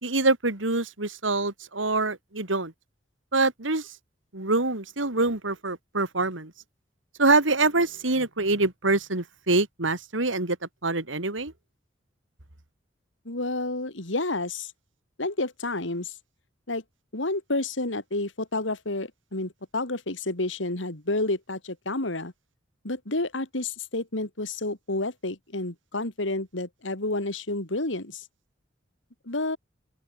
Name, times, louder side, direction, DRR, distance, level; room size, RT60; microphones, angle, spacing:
voice 1, 0.0-2.7 3.3-3.9 4.3-6.5 7.2-10.6 10.8-11.5, right 3 dB, 90° right, 3.2 m, -25 dB
voice 2, 13.2-14.7 15.2-16.1 16.7-16.8 17.1-22.3 22.8-28.2 29.3-29.6, left 2 dB, 80° left, 3.1 m, -30 dB
open air
head